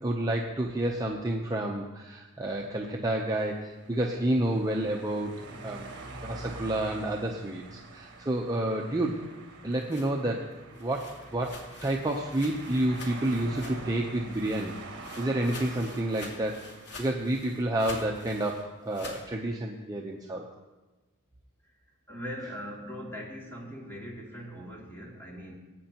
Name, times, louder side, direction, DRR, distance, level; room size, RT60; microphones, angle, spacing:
voice 1, 0.0-5.3 5.6-5.9 6.2-9.2 9.6-14.7 15.2-16.7 17.0-20.5, right 1 dB, 15° right, -1 dB, 0.7 m, -30 dB
sound 1, 2.9-18.3, right 2 dB, 50° right, 1.7 m, -46 dB
sound 2, 9.5-14.0 14.3-19.3, left 2 dB, 75° left, 2.0 m, -47 dB
voice 2, 22.1-25.5, equal, 10° left, -3 dB, 2.5 m, -40 dB
21.0 x 8.7 x 3.0 m, 1.1 s
head